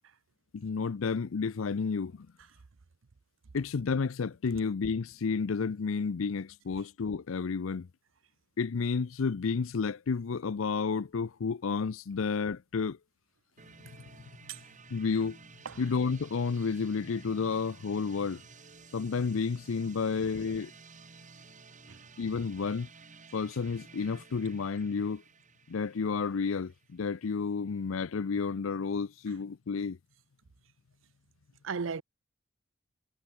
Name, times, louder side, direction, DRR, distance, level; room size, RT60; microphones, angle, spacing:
voice 1, 0.5-2.3 3.5-7.9 8.6-13.0 14.9-15.4 15.8-18.4 18.9-20.7 22.2-22.9 23.3-25.2 25.7-30.0, left 5 dB, 80° left, 0.5 m, -31 dB
sound 1, 13.6-27.3, right 4 dB, 40° right, 3.4 m, -54 dB
voice 2, 31.6-32.0, right 5 dB, 70° right, 0.6 m, -35 dB
head